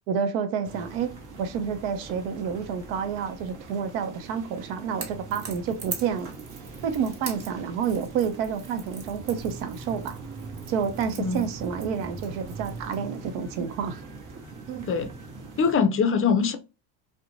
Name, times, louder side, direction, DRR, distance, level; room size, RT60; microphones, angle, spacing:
voice 1, 0.1-1.1 1.4-6.3 6.8-10.2 10.7-14.0 14.7-14.9, right 7 dB, 75° right, 0.7 m, -29 dB
sound 1, 0.6-15.7, right 4 dB, 40° right, 0.9 m, -42 dB
Crackle / Crack, 4.9-13.0, right 4 dB, 55° right, 1.3 m, -43 dB
voice 2, 15.6-16.6, left 5 dB, 30° left, 0.4 m, -22 dB
2.4 x 2.2 x 2.8 m
supercardioid pair, 85°, 50 cm